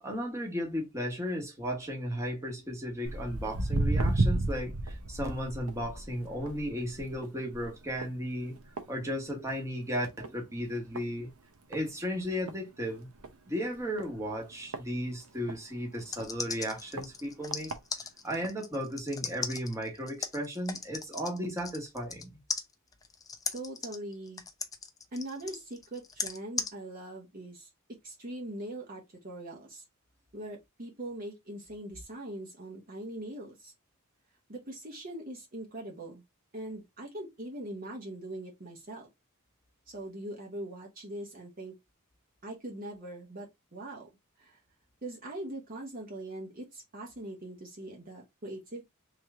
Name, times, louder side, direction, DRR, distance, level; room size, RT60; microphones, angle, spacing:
voice 1, 0.0-8.6 8.9-11.3 11.7-13.1 13.5-17.7 18.2-22.3, equal, 15° right, 1.3 m, -35 dB
Walk footsteps, 3.1-9.7 10.0-10.4 11.0-11.1 11.7-11.8 12.2-12.3 12.5-12.6 13.2-13.3 14.0-15.6 16.2-16.3 17.0-17.1 17.5-17.8 18.4-18.5, right 2 dB, 85° right, 0.8 m, -32 dB
sound 1, 15.9-22.2 22.5-26.7, left 5 dB, 15° left, 0.5 m, -37 dB
voice 2, 23.5-24.4 25.1-27.7 28.0-29.8 30.3-33.7 34.5-36.2 36.5-39.1 39.9-41.7 42.4-44.1 44.4-44.6 45.0-48.8, right 1 dB, 40° right, 1.0 m, -41 dB
3.3 x 3.0 x 3.6 m
head